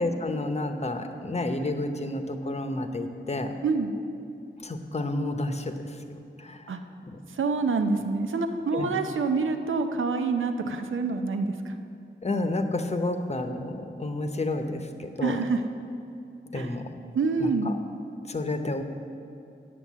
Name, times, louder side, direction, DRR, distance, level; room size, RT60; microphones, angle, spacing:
voice 1, 0.0-3.5 4.6-5.7 6.4-6.6 7.1-7.2 8.7-8.9 12.2-15.4 16.5-16.9 17.4-17.7 18.3-18.8, left 2 dB, 35° left, 6 dB, 0.8 m, -30 dB
voice 2, 7.4-11.7 15.2-15.6 16.5-16.7 17.1-17.7, right 4 dB, 85° right, 6 dB, 0.7 m, -26 dB
9.4 x 7.7 x 7.4 m, 2.6 s
wide cardioid pair, 95°, 20 cm